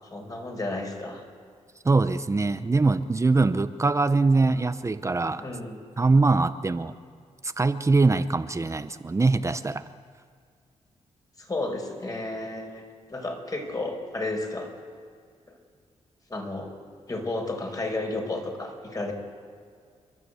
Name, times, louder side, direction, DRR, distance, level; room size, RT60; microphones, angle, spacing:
voice 1, 0.1-1.2 5.4-5.8 11.5-12.8 13.1-14.7 16.3-16.7 17.1-19.1, left 2 dB, 30° left, 3 dB, 4.9 m, -32 dB
voice 2, 1.8-5.4 6.0-6.9 7.4-9.9, right 3 dB, 25° right, 11 dB, 0.8 m, -23 dB
30.0 x 12.0 x 8.2 m, 2.1 s
cardioid pair, 90°, 12 cm